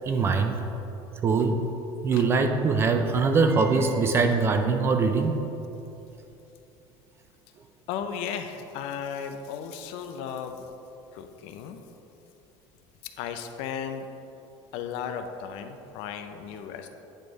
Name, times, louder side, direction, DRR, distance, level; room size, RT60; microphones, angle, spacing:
voice 1, 0.1-0.6 1.2-1.6 2.0-5.4, right 4 dB, 20° right, 6 dB, 0.3 m, -22 dB
voice 2, 7.9-10.7 11.1-11.8 13.0-14.1 14.7-16.9, left 7 dB, 55° left, 7 dB, 0.5 m, -35 dB
8.9 x 3.3 x 5.1 m, 2.9 s
cardioid pair, 170°, 12 cm